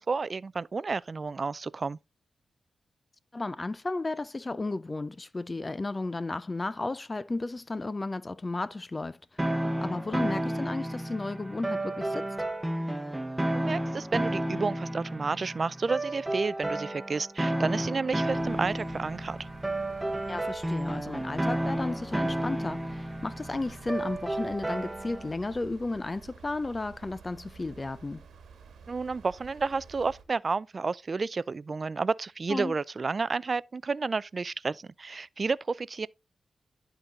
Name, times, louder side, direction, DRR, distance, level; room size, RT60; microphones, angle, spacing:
voice 1, 0.0-2.0 13.5-19.5 28.9-36.1, right 4 dB, 50° right, 0.4 m, -31 dB
voice 2, 3.3-9.4 9.8-12.3 20.3-28.2 32.5-32.7, left 2 dB, 30° left, 0.5 m, -33 dB
sound 1, 9.4-25.3, right 1 dB, 15° right, 1.0 m, -32 dB
sound 2, 18.3-30.2, right 5 dB, 85° right, 1.4 m, -51 dB
11.0 x 3.9 x 3.9 m
cardioid pair, 55°, 0 cm